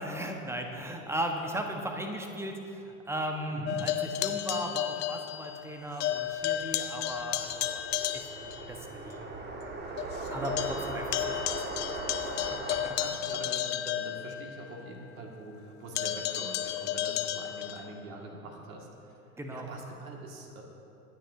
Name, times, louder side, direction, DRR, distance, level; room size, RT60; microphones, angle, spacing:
voice 1, 0.0-7.8 8.1-9.3 10.3-11.9 12.7-13.0 19.4-19.7, right 1 dB, 5° right, 3 dB, 1.3 m, -37 dB
voice 2, 3.5-3.8 10.4-10.7 11.1-11.2 13.0-19.2 19.5-20.6, right 2 dB, 65° right, 0 dB, 2.3 m, -44 dB
sound 1, 3.7-5.7 6.0-8.6 9.1-9.2 9.6-9.7 10.0-14.8 15.9-17.9, left 11 dB, 25° left, 0.6 m, -33 dB
sound 2, 6.1-12.9, right 2 dB, 25° right, 1.5 m, -39 dB
25.0 x 10.0 x 2.8 m, 2.7 s
figure-of-eight pair, 90°, 45 cm